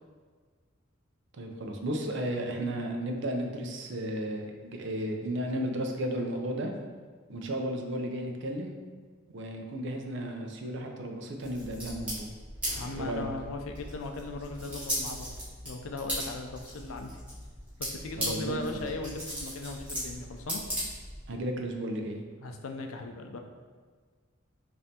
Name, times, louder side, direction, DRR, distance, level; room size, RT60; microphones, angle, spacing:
voice 1, 1.3-6.7 7.3-8.7 9.3-12.3 13.0-13.3 18.2-18.8 21.3-22.2, right 1 dB, 60° right, 2 dB, 0.5 m, -34 dB
sound 1, 11.4-21.3, equal, 5° right, 1.3 m, -38 dB
sound 2, 12.5-13.8, equal, 45° right, 0.9 m, -53 dB
voice 2, 12.7-15.3 15.6-17.1 17.8-20.6 22.4-23.4, left 3 dB, 90° left, 4 dB, 0.4 m, -38 dB
5.2 x 2.6 x 2.8 m, 1.5 s
head